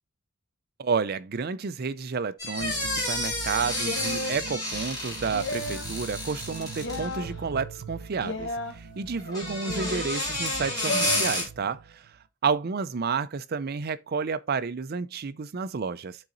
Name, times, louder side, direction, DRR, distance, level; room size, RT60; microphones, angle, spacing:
voice 1, 0.8-12.1 12.4-16.2, right 5 dB, 45° right, 0.4 m, -30 dB
sound 1, 2.4-7.2 9.2-11.4, left 1 dB, 20° left, 3.1 m, -31 dB
sound 2, 2.6-12.2, right 3 dB, 85° right, 0.8 m, -42 dB
Male Autotune F major yeah ey, 3.8-4.4 5.3-5.9 6.8-7.3 8.2-8.7 9.6-10.1 10.9-11.2, left 1 dB, 50° left, 1.1 m, -33 dB
12.0 x 4.0 x 2.6 m
head